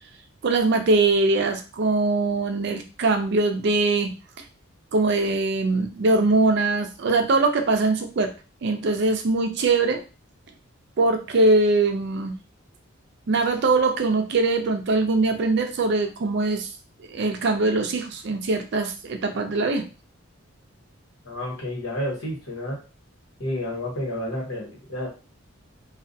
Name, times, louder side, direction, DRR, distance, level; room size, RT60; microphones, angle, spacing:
voice 1, 0.4-4.1 4.9-8.3 8.6-10.0 11.0-12.4 13.3-16.7 17.1-19.8, right 3 dB, 55° right, 6 dB, 0.4 m, -22 dB
voice 2, 21.3-22.8 23.4-25.1, left 1 dB, 80° left, -3 dB, 1.3 m, -30 dB
2.3 x 2.2 x 2.6 m, 0.32 s
head